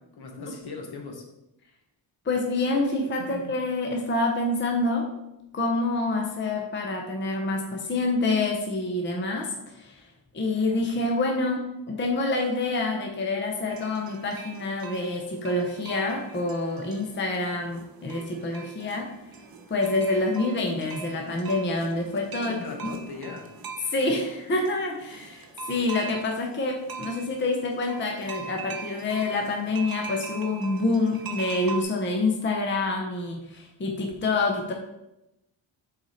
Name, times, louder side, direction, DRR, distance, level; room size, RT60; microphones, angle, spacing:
voice 1, 0.2-1.3 3.2-3.5 22.3-23.5, left 4 dB, 55° left, 3 dB, 1.0 m, -38 dB
voice 2, 2.3-5.1 5.5-10.1 10.3-19.1 19.7-22.6 22.8-22.9 23.9-34.7, left 2 dB, 25° left, 1 dB, 0.6 m, -27 dB
sound 1, 13.7-31.8, right 6 dB, 50° right, 0.7 m, -42 dB
6.0 x 4.1 x 4.1 m, 0.90 s
wide cardioid pair, 175°, 45 cm